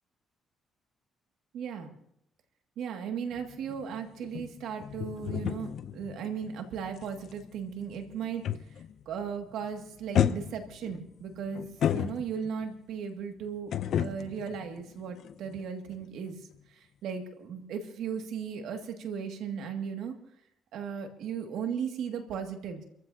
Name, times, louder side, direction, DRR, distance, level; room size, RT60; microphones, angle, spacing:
voice 1, 1.5-1.9 2.8-8.4 9.1-13.7 14.0-16.4 17.0-20.1 20.7-22.8, right 7 dB, 80° right, 4 dB, 2.2 m, -36 dB
sound 1, 3.3-9.0 9.3-9.7 10.1-12.7 13.7-15.6 15.9-16.1, left 9 dB, 70° left, 0.6 m, -33 dB
28.5 x 15.0 x 2.8 m, 0.76 s
cardioid pair, 90°, 0 cm